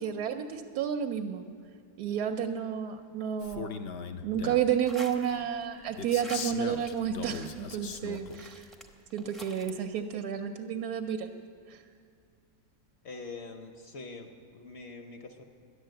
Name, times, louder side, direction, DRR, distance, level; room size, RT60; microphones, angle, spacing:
voice 1, 0.0-1.4 2.0-3.9 4.2-8.7 9.1-11.3 11.7-11.8, right 8 dB, 75° right, 5 dB, 1.1 m, -31 dB
Male speech man speaking, 3.4-4.7 6.0-8.4, left 6 dB, 80° left, 0.5 m, -39 dB
sound 1, 4.8-5.7 6.0-9.7, right 1 dB, ahead, 0.5 m, -49 dB
voice 2, 13.0-15.4, left 3 dB, 55° left, 5 dB, 0.8 m, -44 dB
11.0 x 10.0 x 7.6 m, 2.1 s
omnidirectional pair, 1.8 m